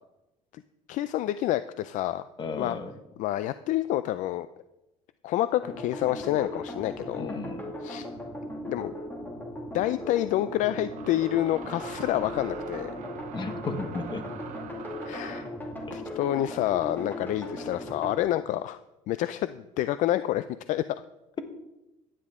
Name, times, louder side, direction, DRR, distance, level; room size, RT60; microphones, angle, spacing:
voice 1, 0.9-2.2 2.6-2.8 3.2-4.5 5.2-7.4 7.8-8.1 8.6-8.9 9.7-12.9 15.0-15.5 15.9-18.8 19.1-20.8, left 13 dB, 55° left, 13 dB, 0.4 m, -28 dB
voice 2, 2.4-2.9 7.2-7.6 13.3-14.2 15.9-16.0, left 3 dB, 30° left, 8 dB, 1.3 m, -34 dB
sound 1, 5.6-18.2, left 1 dB, 10° left, 2.2 m, -38 dB
sound 2, 8.8-8.9 10.8-15.6, right 7 dB, 55° right, 1.0 m, -43 dB
15.0 x 10.0 x 3.7 m, 0.97 s
cardioid pair, 135°, 15 cm